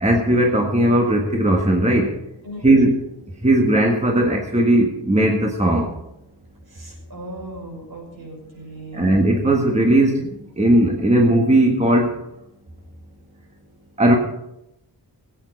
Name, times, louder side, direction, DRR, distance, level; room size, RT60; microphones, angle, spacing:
voice 1, 0.0-2.2 2.6-3.0 3.4-5.9 8.9-10.3 10.6-12.1 14.0-14.1, right 1 dB, 15° right, 1 dB, 1.6 m, -17 dB
voice 2, 2.4-2.9 6.7-9.1 14.1-14.2, right 1 dB, 60° right, -1 dB, 6.1 m, -37 dB
17.5 x 8.9 x 5.3 m, 0.88 s
wide cardioid pair, 95°, 40 cm